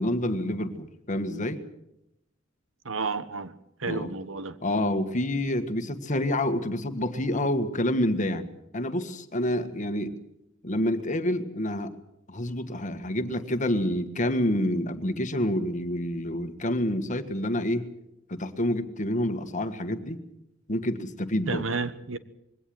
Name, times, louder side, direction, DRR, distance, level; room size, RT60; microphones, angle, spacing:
voice 1, 0.0-1.6 3.9-4.1 4.6-8.5 8.7-10.2 10.6-12.0 12.3-17.9 18.3-20.2 20.7-21.6, left 1 dB, 40° left, 1.5 m, -28 dB
voice 2, 2.8-3.5 3.8-4.6 21.5-22.2, right 4 dB, 90° right, 1.2 m, -31 dB
21.5 x 17.5 x 7.8 m
head